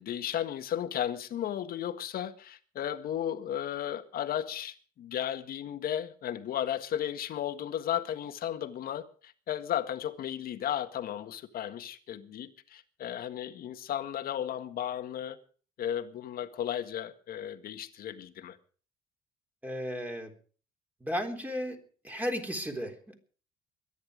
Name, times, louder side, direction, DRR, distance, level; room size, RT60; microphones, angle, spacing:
voice 1, 0.0-15.4 15.8-18.6, left 10 dB, 60° left, 1.7 m, -34 dB
voice 2, 19.6-20.3 21.0-21.8 22.0-23.1, equal, 10° right, 3.8 m, -34 dB
22.5 x 10.5 x 5.1 m
cardioid pair, 110°, 17 cm